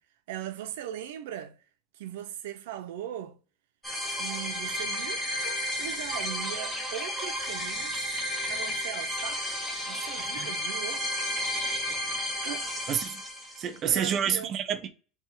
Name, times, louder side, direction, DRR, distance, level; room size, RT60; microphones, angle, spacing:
voice 1, 0.3-1.6 2.0-3.4 4.1-8.1 8.5-9.5 9.9-11.0 12.4-12.7 13.8-14.5, right 11 dB, 85° right, 0.7 m, -39 dB
sound 1, 3.8-13.8, equal, ahead, 1.1 m, -32 dB
voice 2, 12.9-13.2 13.6-14.9, right 8 dB, 30° right, 0.6 m, -28 dB
3.5 x 3.4 x 4.5 m
supercardioid pair, 165°, 0 cm